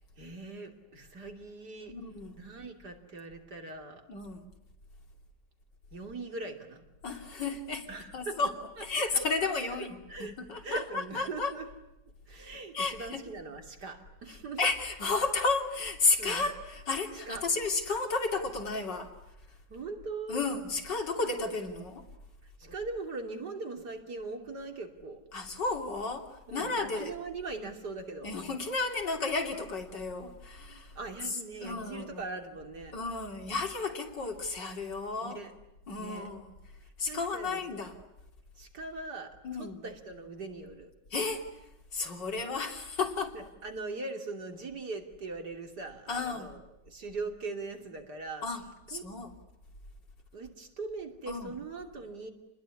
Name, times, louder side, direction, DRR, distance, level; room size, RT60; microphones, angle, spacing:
voice 1, 0.2-2.0 2.4-4.1 5.9-6.8 7.9-8.4 9.7-11.7 12.3-14.6 16.2-16.4 17.3-17.4 19.7-20.5 22.4-25.3 26.5-28.3 31.0-33.0 35.2-35.5 36.0-36.3 37.1-37.6 38.6-40.9 43.3-48.5 48.9-49.1 50.3-52.3, right 3 dB, 65° right, 4 dB, 3.6 m, -41 dB
voice 2, 1.9-2.4 4.1-4.4 7.0-7.9 8.1-8.5 8.8-11.5 12.7-13.2 14.6-19.1 20.3-22.0 25.3-27.1 28.2-31.0 31.6-32.2 32.9-35.4 35.9-36.5 37.0-38.0 39.4-39.8 41.1-41.4 41.9-43.4 46.1-46.5 48.4-48.6 48.9-49.3 51.3-51.5, left 3 dB, 75° left, 3 dB, 3.6 m, -32 dB
29.0 x 21.0 x 9.8 m, 0.95 s
omnidirectional pair, 1.9 m